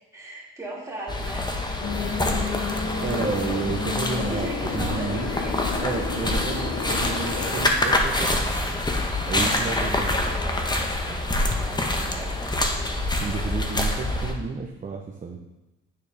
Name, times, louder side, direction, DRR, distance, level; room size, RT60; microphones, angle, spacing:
voice 1, 0.0-2.8 4.2-5.9 9.9-10.7 11.1-12.5, right 1 dB, 10° right, -6 dB, 2.5 m, -39 dB
sound 1, 1.1-14.3, left 1 dB, 15° left, 0.9 m, -26 dB
sound 2, 1.8-7.5, left 6 dB, 55° left, 0.7 m, -32 dB
voice 2, 3.0-4.5 4.7-5.3 5.8-10.2 12.0-12.1 13.1-15.4, right 5 dB, 25° right, 1 dB, 0.7 m, -31 dB
9.4 x 4.1 x 3.3 m, 1.0 s
cardioid pair, 90°, 30 cm